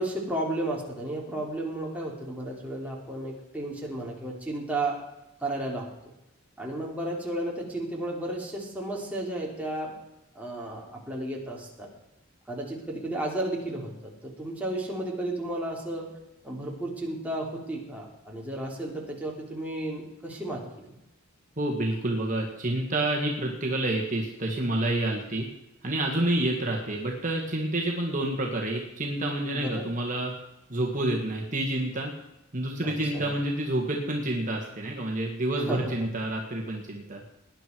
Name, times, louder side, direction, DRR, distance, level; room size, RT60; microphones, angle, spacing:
voice 1, 0.0-5.0 5.4-5.9 6.6-9.9 10.4-11.9 12.5-16.1 16.4-20.6 29.5-29.9 32.8-33.3 35.7-36.1, right 1 dB, 10° right, -3 dB, 3.5 m, -33 dB
voice 2, 21.6-25.5 25.8-30.3 30.7-32.1 32.5-37.2, right 1 dB, 40° right, 0 dB, 1.9 m, -28 dB
19.0 x 10.5 x 4.7 m, 0.90 s
head